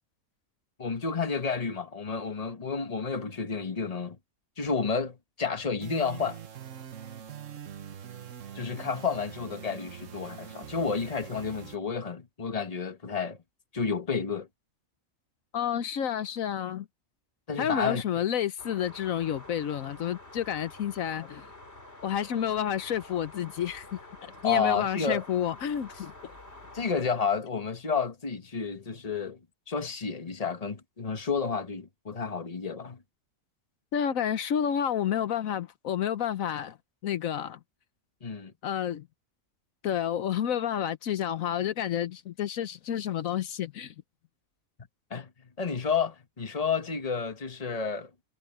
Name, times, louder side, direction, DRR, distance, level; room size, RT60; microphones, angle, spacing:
voice 1, 0.8-4.2 4.6-6.4 8.5-13.4 13.7-14.5 17.5-18.2 24.4-25.2 26.7-29.4 29.7-33.0 38.2-38.5 45.1-48.1, left 5 dB, 30° left, 1.4 m, -31 dB
sound 1, 5.8-11.8, right 9 dB, 65° right, 1.5 m, -44 dB
voice 2, 15.5-16.9 17.6-21.5 22.0-26.3 33.9-36.8 37.0-37.6 38.6-39.1 39.8-43.9, left 9 dB, 80° left, 1.2 m, -30 dB
sound 2, 18.6-27.0, left 2 dB, 50° left, 5.0 m, -48 dB
omnidirectional pair, 1.4 m